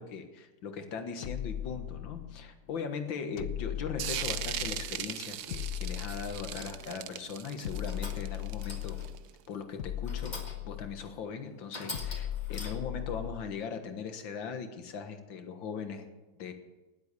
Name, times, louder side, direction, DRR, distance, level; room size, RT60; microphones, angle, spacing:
voice 1, 0.0-9.0 9.5-10.4 10.6-16.1 16.4-16.5, left 5 dB, 65° left, 7 dB, 2.2 m, -39 dB
sound 1, 1.2-2.5 3.4-5.0 5.5-6.9 7.6-9.3 9.8-11.2 11.9-13.5, left 12 dB, 90° left, 0.7 m, -38 dB
sound 2, 4.0-9.3, right 11 dB, 70° right, 0.9 m, -38 dB
sound 3, 6.6-6.9 7.6-8.3 8.6-9.2 10.0-10.8 11.2-11.3 11.7-13.0, left 2 dB, 20° left, 1.8 m, -44 dB
19.0 x 8.1 x 8.3 m, 1.2 s
omnidirectional pair, 2.3 m